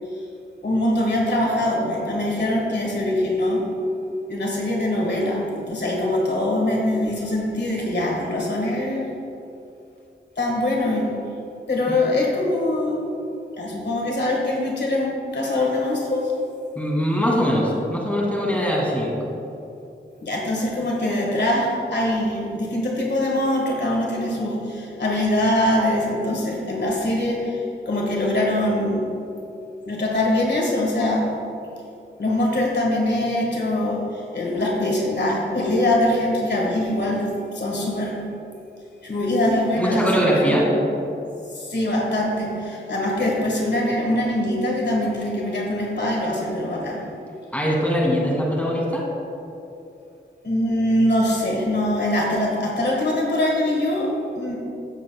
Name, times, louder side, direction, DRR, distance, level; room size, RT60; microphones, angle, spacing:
voice 1, 0.6-3.6 4.3-9.1 10.4-11.1 11.7-13.0 13.6-16.3 18.5-18.6 20.2-29.1 29.9-31.3 32.2-38.2 39.0-40.6 41.5-47.0 50.4-54.1 54.4-54.6, left 1 dB, 60° left, -2 dB, 1.6 m, -23 dB
voice 2, 16.8-19.1 39.8-40.6 47.5-49.0, equal, 5° left, -3 dB, 2.2 m, -21 dB
16.0 x 7.4 x 2.3 m, 2.7 s
wide cardioid pair, 80°, 20 cm